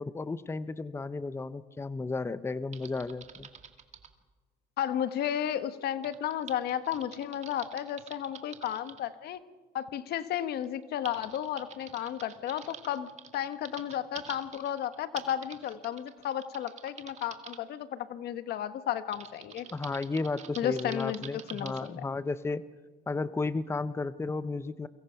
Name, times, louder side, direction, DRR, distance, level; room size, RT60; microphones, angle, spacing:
voice 1, 0.0-3.5 19.7-22.6 23.1-24.9, left 3 dB, 15° left, 14 dB, 0.7 m, -33 dB
Typing, 2.7-4.1 6.0-9.0 10.1-10.2 10.6-17.6 19.1-21.9, right 7 dB, 45° right, 2.2 m, -48 dB
voice 2, 4.8-9.4 9.7-19.7 20.6-22.0, left 10 dB, 70° left, 11 dB, 1.4 m, -33 dB
29.5 x 23.5 x 5.8 m, 1.4 s
cardioid pair, 110°, 17 cm